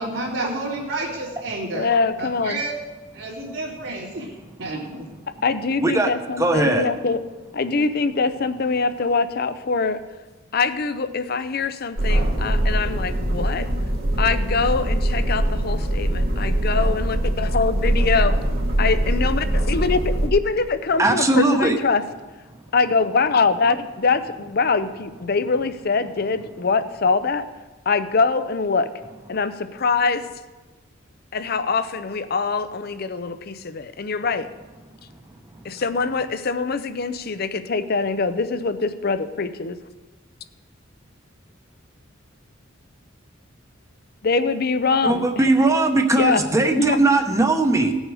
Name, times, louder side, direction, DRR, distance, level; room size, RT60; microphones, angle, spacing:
voice 1, 0.0-1.9 2.2-2.7 3.1-4.3 4.6-5.1, right 2 dB, 85° right, -8 dB, 2.8 m, -30 dB
voice 2, 1.7-2.6 5.4-7.2 7.5-10.0 10.5-13.7 14.2-18.4 18.8-22.0 22.7-27.4 27.9-28.9 29.3-30.3 31.3-34.5 35.6-39.8 44.2-45.4 46.1-47.0, left 4 dB, 50° left, 11 dB, 0.6 m, -23 dB
voice 3, 5.8-6.1 6.4-6.9 21.0-21.8 45.0-47.9, right 2 dB, 15° right, 5 dB, 0.9 m, -19 dB
sound 1, 12.0-20.3, right 1 dB, 50° right, 1.4 m, -22 dB
18.0 x 6.4 x 4.9 m, 1.2 s
head